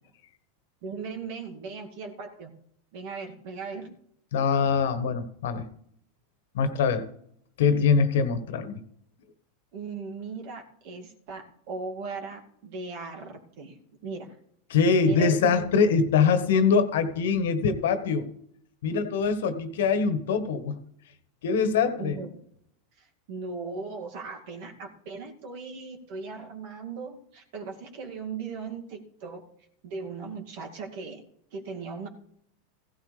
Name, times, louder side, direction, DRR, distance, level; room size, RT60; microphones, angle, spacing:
voice 1, 0.8-2.5 2.9-3.9 9.7-14.3 15.0-15.5 22.0-22.3 23.0-29.4 29.8-31.2 31.5-32.1, right 4 dB, 60° right, 2 dB, 2.3 m, -38 dB
voice 2, 4.3-5.7 6.5-7.0 7.6-8.8 14.7-18.3 18.8-20.8 21.4-22.1, left 5 dB, 75° left, 11 dB, 1.3 m, -23 dB
15.5 x 12.5 x 3.3 m, 0.70 s
hypercardioid pair, 100°, 0 cm